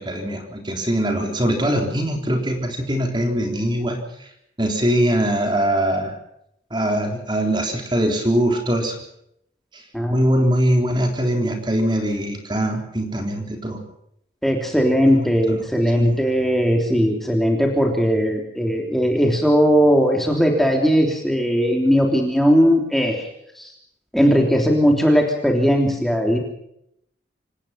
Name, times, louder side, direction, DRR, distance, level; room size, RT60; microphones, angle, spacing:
voice 1, 0.0-4.3 4.6-6.1 6.7-9.0 9.7-9.8 10.1-13.8 15.1-15.6 16.0-16.2, equal, 25° right, 3 dB, 3.7 m, -22 dB
voice 2, 14.4-23.3 23.6-23.7 24.1-26.4, equal, ahead, 1 dB, 3.2 m, -18 dB
26.0 x 18.5 x 5.8 m, 0.75 s
head